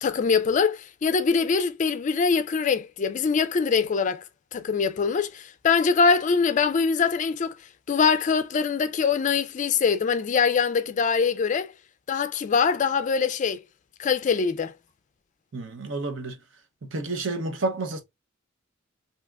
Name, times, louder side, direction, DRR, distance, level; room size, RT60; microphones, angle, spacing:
voice 1, 0.0-4.2 4.5-7.5 7.9-11.7 12.1-13.6 14.0-14.7, left 5 dB, 40° left, 0.3 m, -23 dB
voice 2, 15.5-16.4 16.8-18.0, right 3 dB, 70° right, 0.7 m, -30 dB
3.4 x 2.8 x 2.2 m
head